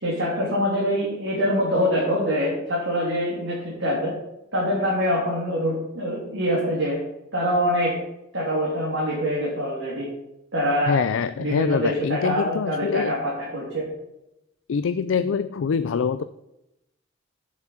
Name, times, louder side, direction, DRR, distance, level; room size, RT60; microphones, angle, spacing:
voice 1, 0.0-4.1 4.5-7.0 7.3-7.9 8.3-10.1 10.5-11.0 11.4-13.2 13.5-13.8, equal, 65° right, -6 dB, 3.1 m, -24 dB
voice 2, 10.9-13.1 14.7-16.2, left 6 dB, 70° left, 13 dB, 0.4 m, -24 dB
7.3 x 7.2 x 7.1 m, 0.88 s
head